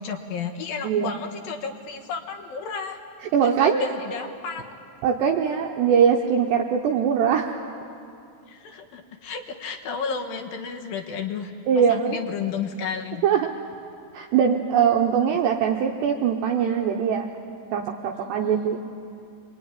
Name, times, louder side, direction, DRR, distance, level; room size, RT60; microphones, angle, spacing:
voice 1, 0.0-3.0 3.4-4.7 8.5-13.3 15.3-15.4 18.2-18.8, left 5 dB, 65° left, 3 dB, 2.4 m, -33 dB
voice 2, 0.8-1.2 3.3-3.8 5.0-7.5 11.7-12.2 13.2-13.5 14.1-17.3 17.7-18.8, right 7 dB, 75° right, 1 dB, 2.8 m, -21 dB
27.0 x 22.5 x 9.8 m, 2.5 s
omnidirectional pair, 5.8 m